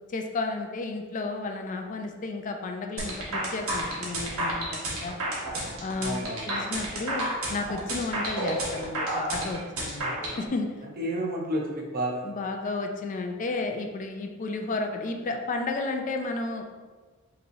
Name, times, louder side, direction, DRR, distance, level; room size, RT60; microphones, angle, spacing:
voice 1, 0.1-5.2 5.8-10.1 10.4-10.7 12.2-16.6, left 3 dB, 35° left, 4 dB, 0.3 m, -32 dB
sound 1, 3.0-10.4, right 1 dB, 85° right, 1.2 m, -30 dB
voice 2, 6.0-6.5 10.0-10.4 11.0-12.3, right 1 dB, 45° right, -1 dB, 0.8 m, -31 dB
5.3 x 3.0 x 2.7 m, 1.4 s
head